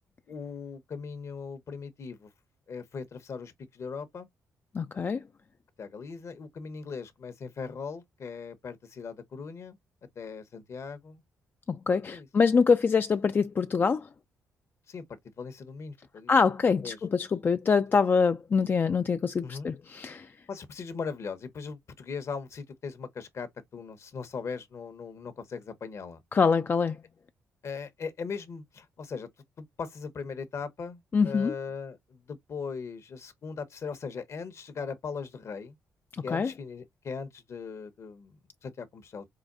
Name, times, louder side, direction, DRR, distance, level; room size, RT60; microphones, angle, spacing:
voice 1, 0.3-2.3 2.7-4.3 5.8-9.8 10.2-11.2 12.0-12.3 14.9-16.3 16.8-17.0 19.4-19.7 20.5-26.2 27.6-29.3 29.6-35.8 36.2-39.3, left 5 dB, 55° left, 0.9 m, -39 dB
voice 2, 4.7-5.2 11.7-14.1 16.3-20.3 26.3-27.0 31.1-31.5 36.3-36.5, left 5 dB, 35° left, 0.3 m, -25 dB
4.9 x 2.3 x 2.5 m
cardioid pair, 70°, 6 cm